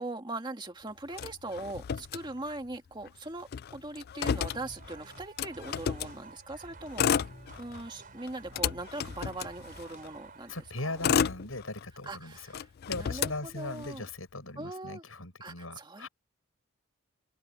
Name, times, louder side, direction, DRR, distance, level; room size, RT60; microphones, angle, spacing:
voice 1, 0.0-7.3 7.6-10.5 10.8-11.2 12.0-14.0 14.6-15.0 15.4-16.1, right 2 dB, 20° right, 2.0 m, -41 dB
Motor vehicle (road), 1.1-2.8 3.1-3.2 3.4-6.2 6.8-7.9 8.3-10.1 10.7-12.1 12.5-14.1, left 7 dB, 50° left, 0.3 m, -32 dB
sound 1, 4.3-10.8, right 3 dB, 40° right, 4.3 m, -51 dB
voice 2, 10.5-12.5 12.9-16.1, left 2 dB, 80° left, 7.7 m, -39 dB
open air
head